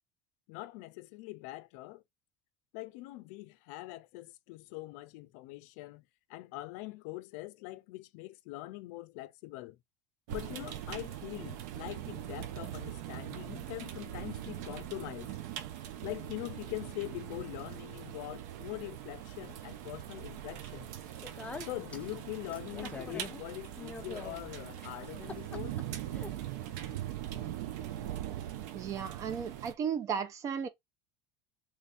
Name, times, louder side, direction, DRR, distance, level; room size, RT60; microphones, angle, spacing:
voice 1, 0.5-2.0 2.7-6.0 6.3-9.8 10.3-15.3 16.0-20.9 21.6-25.8, left 19 dB, 75° left, 0.4 m, -43 dB
sound 1, 10.3-29.7, right 12 dB, 80° right, 0.7 m, -41 dB
Speech, 21.0-27.0, left 3 dB, 15° left, 0.5 m, -47 dB
voice 2, 28.7-30.7, right 7 dB, 35° right, 0.7 m, -35 dB
3.1 x 2.6 x 3.4 m
cardioid pair, 140°, 9 cm